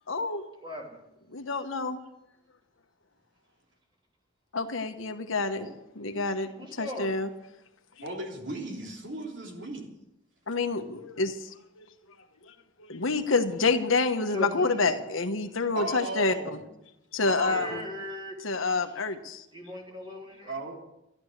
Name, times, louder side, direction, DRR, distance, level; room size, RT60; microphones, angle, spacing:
voice 1, 0.1-0.4 1.3-2.0 4.5-5.7 5.9-7.3 10.5-11.9 12.4-12.5 12.8-16.6 17.1-17.8 18.4-19.4, left 3 dB, 80° left, 1.2 m, -28 dB
voice 2, 0.6-1.0 5.5-5.7 6.6-7.1 14.3-14.9 17.4-18.4 19.5-20.6, left 1 dB, 20° right, 3.0 m, -38 dB
voice 3, 8.0-9.9 15.7-16.6 17.2-17.8 20.5-20.8, right 2 dB, 60° right, 3.3 m, -36 dB
13.0 x 12.0 x 6.6 m
head